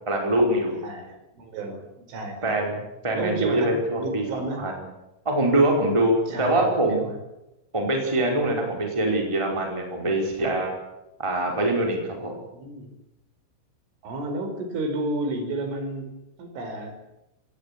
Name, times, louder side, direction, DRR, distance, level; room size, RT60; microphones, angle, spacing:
voice 1, 0.0-0.8 2.4-4.2 4.6-4.7 5.2-7.1 7.7-10.7 11.2-12.3, right 1 dB, 5° right, 1 dB, 4.6 m, -23 dB
voice 2, 0.8-2.6 3.1-4.7 6.3-7.2 12.5-12.9 14.0-17.0, right 2 dB, 70° right, 6 dB, 7.2 m, -32 dB
26.0 x 19.0 x 8.6 m, 0.92 s
omnidirectional pair, 5.8 m